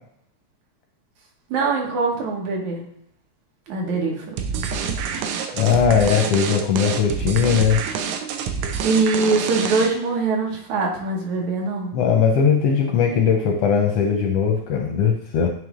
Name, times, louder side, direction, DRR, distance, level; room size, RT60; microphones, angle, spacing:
voice 1, 1.5-2.8 3.7-4.4 5.6-5.8 8.8-11.9, right 3 dB, 70° right, 0 dB, 2.5 m, -23 dB
sound 1, 4.4-10.1, right 6 dB, 90° right, 2.2 m, -27 dB
voice 2, 5.6-7.8 11.9-15.5, left 7 dB, 80° left, 2 dB, 1.4 m, -19 dB
8.9 x 3.1 x 3.6 m, 0.67 s
omnidirectional pair, 3.4 m